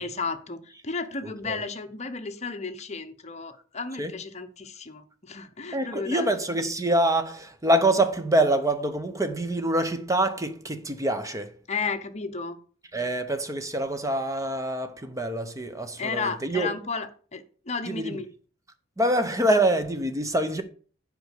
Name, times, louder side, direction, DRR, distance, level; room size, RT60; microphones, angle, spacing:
voice 1, 0.0-6.3 11.7-12.6 16.0-18.3, left 4 dB, 30° left, 0.9 m, -33 dB
voice 2, 5.7-11.5 12.9-16.7 17.9-18.2 19.0-20.6, right 1 dB, 15° right, 0.8 m, -25 dB
7.7 x 5.3 x 6.6 m
head